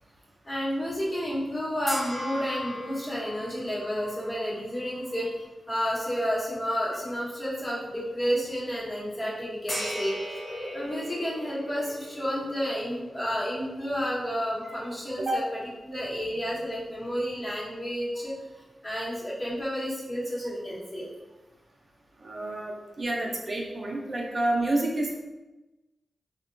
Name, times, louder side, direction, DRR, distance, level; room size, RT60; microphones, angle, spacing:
voice 1, 0.4-10.2 10.7-15.4 15.8-18.3 18.8-21.1, equal, 30° left, -6 dB, 1.0 m, -31 dB
sound 1, 1.9-5.4 5.9-6.1 9.7-16.1, left 1 dB, 85° left, 1.3 m, -39 dB
voice 2, 22.2-25.1, right 1 dB, 55° right, -1 dB, 0.5 m, -29 dB
2.8 x 2.1 x 2.5 m, 1.1 s
cardioid pair, 45°, 0 cm